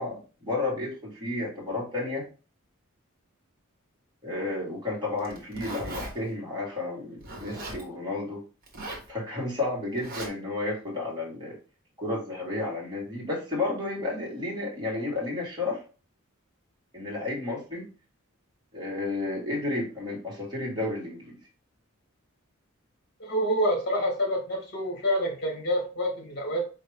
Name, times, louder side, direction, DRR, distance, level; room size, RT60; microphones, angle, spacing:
voice 1, 0.0-2.2 4.2-8.4 9.1-11.5 12.0-15.8 16.9-17.9 18.7-21.4, left 2 dB, 20° right, -4 dB, 1.6 m, -32 dB
Zipper (clothing), 5.2-6.1 7.2-7.8 8.6-9.1 10.0-10.3, right 2 dB, 45° right, 1.2 m, -37 dB
voice 2, 23.2-26.6, equal, 50° left, 1 dB, 1.3 m, -27 dB
4.4 x 2.8 x 3.4 m, 0.35 s
head